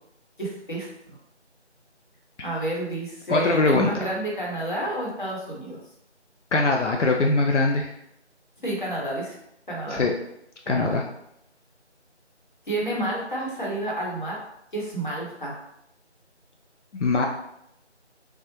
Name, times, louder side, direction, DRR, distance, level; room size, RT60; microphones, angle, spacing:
voice 1, 0.4-0.9 2.4-5.8 8.6-9.4 9.7-10.0 10.6-11.0 12.7-14.4 14.7-15.6, right 1 dB, 45° left, -4 dB, 0.9 m, -30 dB
voice 2, 3.3-3.9 6.5-7.9 9.9-10.1 10.7-11.0 16.9-17.3, left 3 dB, 80° left, 1 dB, 0.5 m, -21 dB
3.3 x 2.1 x 3.0 m, 0.78 s
figure-of-eight pair, 170°, 35 cm